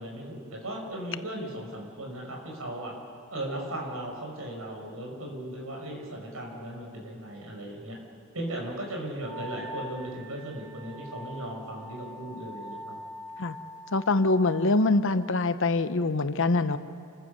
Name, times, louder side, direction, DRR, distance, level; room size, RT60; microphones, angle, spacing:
voice 1, 0.0-2.9 3.3-8.0 8.3-13.0, right 1 dB, 80° right, 0 dB, 5.7 m, -37 dB
Wind instrument woodwind instrument, 9.2-14.8, equal, 10° left, 5.8 m, -43 dB
voice 2, 13.9-16.8, left 2 dB, 65° left, 11 dB, 0.9 m, -24 dB
28.5 x 15.0 x 6.8 m, 2.6 s
head